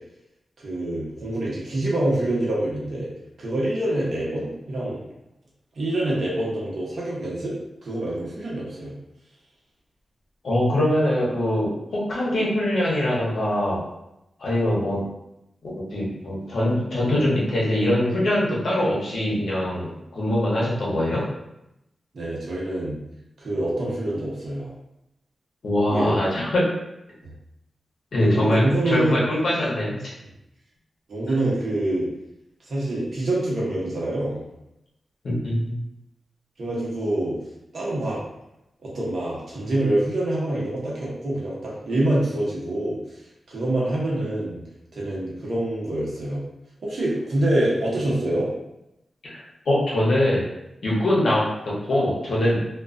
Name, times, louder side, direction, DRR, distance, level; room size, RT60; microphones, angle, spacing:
voice 1, 0.6-3.1 3.4-5.0 5.8-7.5 7.8-9.0 22.1-23.0 23.4-24.7 25.9-26.2 27.2-27.3 28.3-29.2 31.1-32.1 32.7-34.4 36.6-37.3 37.7-38.2 38.8-43.0 43.5-44.6 44.9-46.4 46.8-48.5, right 1 dB, 65° right, -6 dB, 0.9 m, -26 dB
voice 2, 10.4-13.8 14.4-15.0 15.6-21.2 25.6-26.7 28.1-30.1 35.2-35.7 49.3-49.4 49.7-50.4 50.8-52.7, left 1 dB, 70° left, -6 dB, 0.8 m, -23 dB
2.3 x 2.3 x 2.4 m, 0.87 s
wide cardioid pair, 120°, 0 cm